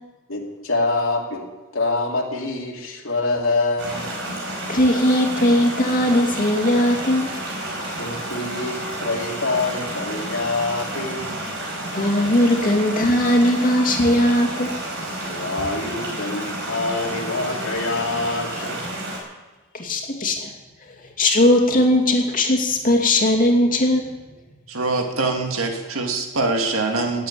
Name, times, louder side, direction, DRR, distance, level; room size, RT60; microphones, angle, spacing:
voice 1, 0.3-1.4 1.7-4.1 8.0-11.3 15.3-18.8, left 3 dB, 70° left, -1 dB, 2.8 m, -25 dB
sound 1, 3.8-19.2, right 1 dB, 60° right, 5.1 m, -30 dB
voice 2, 4.7-7.3 11.9-14.7 19.7-20.5 21.2-24.0, left 1 dB, 40° left, 2 dB, 2.6 m, -18 dB
voice 3, 24.7-27.3, right 3 dB, 80° right, 3 dB, 2.0 m, -23 dB
18.5 x 8.3 x 8.7 m, 1.2 s
head